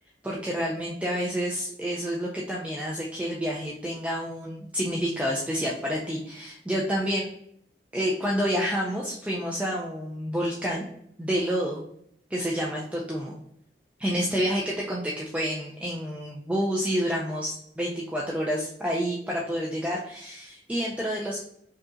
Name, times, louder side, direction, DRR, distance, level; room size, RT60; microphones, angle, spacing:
voice 1, 0.2-7.3 7.9-10.8 11.2-11.8 12.3-13.4 14.0-21.4, equal, 10° right, -3 dB, 0.4 m, -29 dB
4.8 x 2.8 x 2.5 m, 0.69 s
head